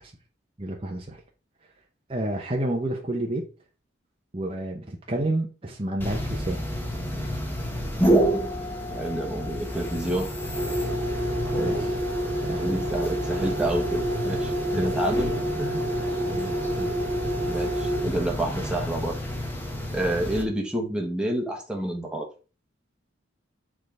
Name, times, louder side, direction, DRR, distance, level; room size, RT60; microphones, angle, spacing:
voice 1, 0.6-1.2 2.1-3.5 4.3-6.6 11.5-12.0 12.5-12.8 14.7-14.9 16.3-16.9, right 1 dB, 30° right, 0.9 m, -30 dB
sound 1, 6.0-20.4, equal, 10° left, 1.5 m, -27 dB
voice 2, 8.9-10.3 12.4-15.3 15.6-15.8 17.2-19.2 19.9-22.3, right 1 dB, 5° right, 1.5 m, -29 dB
6.6 x 3.7 x 4.9 m
head